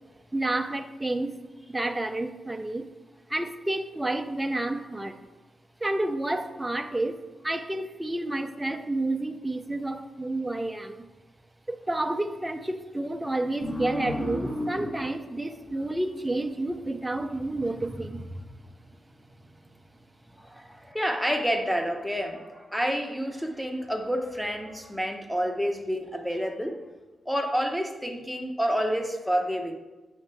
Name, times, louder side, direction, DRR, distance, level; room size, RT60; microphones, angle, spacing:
voice 1, 0.3-1.4 1.7-2.9 3.3-5.2 5.8-11.1 11.7-18.4, right 2 dB, 15° right, 7 dB, 0.5 m, -30 dB
sound 1, 13.6-16.8, left 1 dB, 45° left, 2.0 m, -34 dB
voice 2, 20.4-26.9 27.3-29.7, equal, ahead, 5 dB, 0.9 m, -29 dB
8.0 x 5.7 x 3.4 m, 1.2 s
cardioid pair, 70°, 0 cm